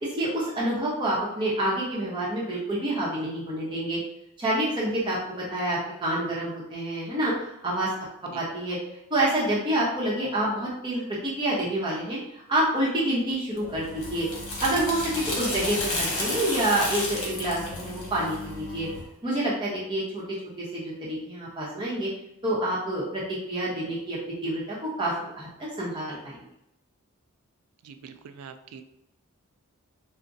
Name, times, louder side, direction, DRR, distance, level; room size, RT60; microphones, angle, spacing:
voice 1, 0.0-4.0 4.4-7.9 8.3-8.8 9.1-14.3 14.6-18.9 19.2-20.2 20.6-22.1 22.4-25.5 25.8-26.4, right 1 dB, 20° right, -6 dB, 0.7 m, -28 dB
sound 1, 13.6-19.0, left 2 dB, 75° left, 1.2 m, -32 dB
voice 2, 27.8-28.8, right 7 dB, 85° right, 9 dB, 0.3 m, -44 dB
4.7 x 2.1 x 2.6 m, 0.83 s
head